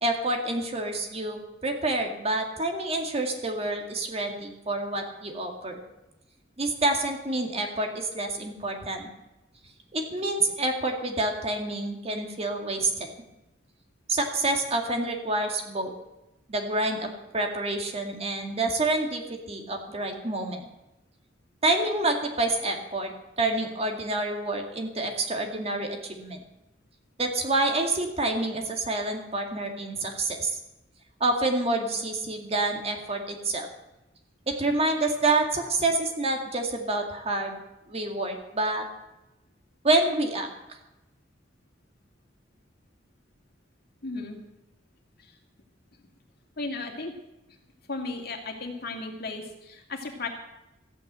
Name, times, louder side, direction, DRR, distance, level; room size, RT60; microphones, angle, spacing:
voice 1, 0.0-5.8 6.6-9.1 9.9-13.1 14.1-15.9 16.5-20.6 21.6-26.4 27.2-30.6 31.2-33.7 34.5-37.6 37.9-38.8 39.8-40.5, right 2 dB, 35° right, 3 dB, 2.1 m, -28 dB
voice 2, 44.0-44.4 45.2-45.3 46.6-47.1 47.9-50.3, left 3 dB, 55° left, 2 dB, 2.5 m, -35 dB
14.5 x 9.2 x 8.1 m, 0.95 s
head